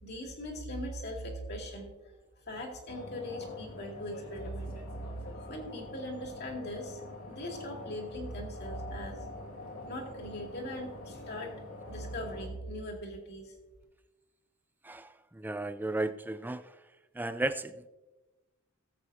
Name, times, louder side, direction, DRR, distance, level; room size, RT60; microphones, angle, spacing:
voice 1, 0.0-1.9 2.5-4.7 5.3-7.0 7.3-9.2 9.8-11.6 11.9-13.5, equal, 50° left, 1 dB, 2.5 m, -40 dB
sound 1, 2.9-12.5, left 2 dB, 80° left, 2.1 m, -45 dB
voice 2, 14.8-16.7 17.1-17.9, right 2 dB, 10° right, 12 dB, 0.4 m, -34 dB
19.0 x 8.1 x 2.8 m, 1.1 s
head